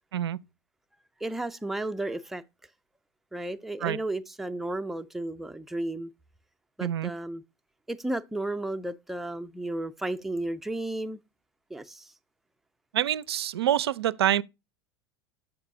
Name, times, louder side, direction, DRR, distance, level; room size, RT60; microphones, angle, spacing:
voice 1, 1.2-2.4 3.3-6.1 6.8-7.4 7.9-11.2 11.7-12.1, right 1 dB, ahead, 0.4 m, -33 dB
voice 2, 6.8-7.1 12.9-14.4, right 11 dB, 70° right, 0.4 m, -26 dB
7.2 x 4.7 x 3.6 m
figure-of-eight pair, 80°, 14 cm